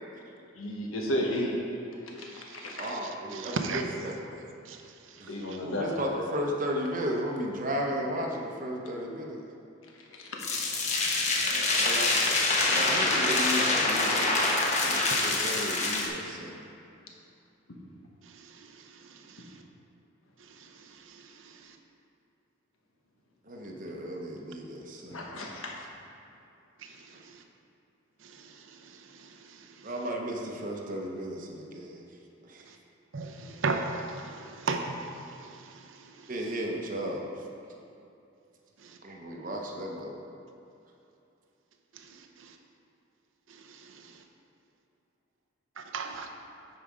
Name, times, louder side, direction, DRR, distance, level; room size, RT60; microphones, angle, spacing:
voice 1, 0.5-1.6 2.2-2.9 5.3-5.9 10.2-10.4 10.8-11.2 25.1-25.7, left 1 dB, 90° left, -1 dB, 1.3 m, -33 dB
voice 2, 2.2-3.8 4.7-5.8 18.2-19.6 20.4-21.8 26.8-27.4 28.2-29.9 32.7-32.8 33.1-36.3 38.8-39.0 41.9-42.6 43.5-44.2 45.8-46.3, right 3 dB, 70° right, 4 dB, 0.7 m, -38 dB
voice 3, 2.8-4.3 5.2-5.3 5.6-9.4 11.4-12.4 12.7-14.3 14.8-16.6 23.5-25.2 29.8-32.0 32.4-32.7 36.3-37.3 39.0-40.2, equal, 40° right, 0 dB, 0.8 m, -34 dB
sound 1, 10.4-16.1, left 2 dB, 35° left, 0.9 m, -26 dB
9.3 x 4.8 x 4.9 m, 2.7 s
head